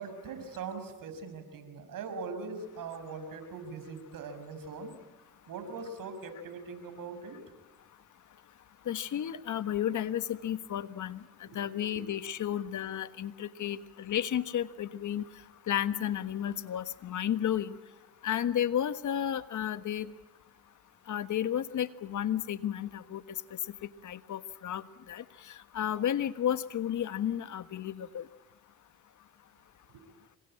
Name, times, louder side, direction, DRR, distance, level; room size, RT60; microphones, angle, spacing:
voice 1, 0.0-4.9 5.5-7.4 11.4-11.6, right 4 dB, 70° right, 8 dB, 5.9 m, -41 dB
voice 2, 8.9-11.2 11.5-15.2 15.7-17.8 18.2-20.1 21.1-23.2 24.0-24.8 25.1-25.2 25.7-28.2, left 10 dB, 60° left, 13 dB, 1.4 m, -32 dB
27.0 x 23.0 x 8.8 m, 1.1 s
supercardioid pair, 75°, 34 cm